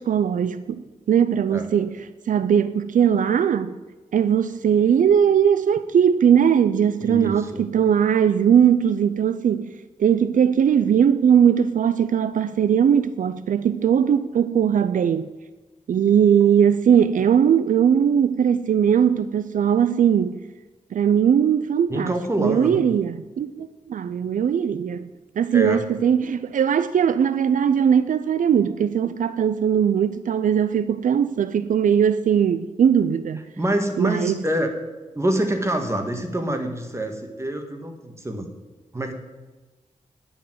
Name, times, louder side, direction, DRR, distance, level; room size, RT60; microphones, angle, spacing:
voice 1, 0.0-2.0 2.3-3.8 4.1-15.3 15.9-20.4 20.9-25.1 25.4-33.4 34.0-34.4, right 8 dB, 75° right, 0.4 m, -19 dB
voice 2, 7.0-7.6 21.9-22.8 25.5-25.8 33.6-34.7 35.1-38.5 38.9-39.1, right 1 dB, 20° right, 1.9 m, -26 dB
9.9 x 7.0 x 7.8 m
cardioid pair, 70°, 13 cm